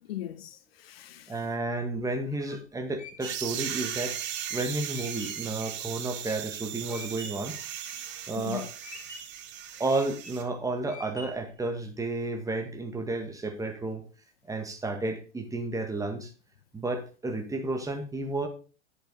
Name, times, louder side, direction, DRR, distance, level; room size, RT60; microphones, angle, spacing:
voice 1, 0.0-1.4 6.9-7.1 7.8-8.1 8.4-8.7, left 14 dB, 55° left, 1.0 m, -40 dB
voice 2, 1.3-4.1 4.5-7.6 8.3-8.7 9.8-14.0 14.5-16.3 16.7-18.5, right 2 dB, 10° right, 1.8 m, -32 dB
sound 1, 2.3-7.5 8.0-8.5 8.8-9.5 10.0-10.5 10.9-11.6, left 1 dB, 80° left, 2.4 m, -46 dB
sound 2, 3.2-10.4, right 10 dB, 30° right, 1.3 m, -37 dB
11.0 x 8.0 x 3.9 m
figure-of-eight pair, 90°, 35 cm